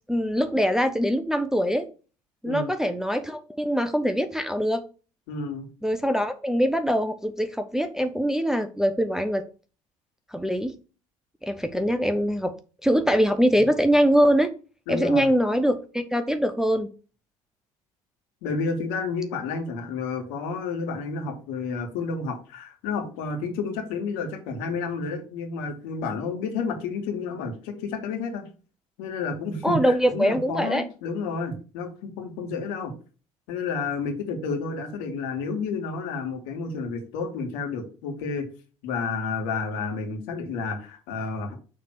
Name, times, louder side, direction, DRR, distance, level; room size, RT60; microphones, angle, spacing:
voice 1, 0.1-1.9 2.4-4.8 5.8-9.4 10.3-10.7 11.4-12.5 12.8-14.5 14.9-16.9 29.6-30.8, equal, 5° right, 7 dB, 0.6 m, -23 dB
voice 2, 5.3-5.7 14.9-15.3 18.4-28.5 29.0-32.9 33.5-38.4 38.8-41.5, left 4 dB, 60° left, 3 dB, 1.7 m, -30 dB
6.5 x 3.3 x 6.0 m, 0.36 s
figure-of-eight pair, 60°, 18 cm